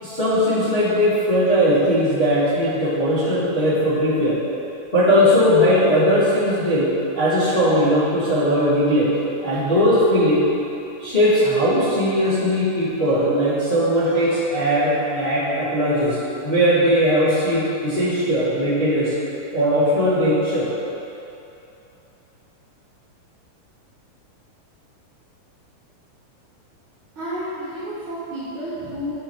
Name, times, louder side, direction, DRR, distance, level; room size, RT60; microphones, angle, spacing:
voice 1, 0.0-4.4 4.9-9.1 9.4-10.4 11.0-19.1 19.5-20.7, equal, 30° left, -13 dB, 1.2 m, -19 dB
voice 2, 27.1-29.1, equal, 50° right, -12 dB, 1.6 m, -30 dB
10.5 x 4.5 x 4.5 m, 2.9 s
omnidirectional pair, 4.0 m